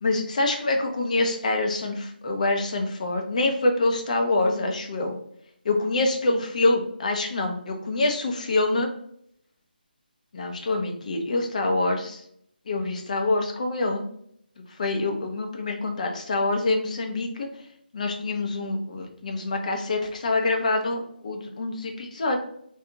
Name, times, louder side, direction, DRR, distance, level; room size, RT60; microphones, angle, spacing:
voice 1, 0.0-5.2 5.6-8.9 10.3-12.2 12.7-14.1 14.8-17.5 17.9-22.4, left 2 dB, 45° left, 3 dB, 0.7 m, -25 dB
2.8 x 2.4 x 3.6 m, 0.68 s
figure-of-eight pair, 160°, 5 cm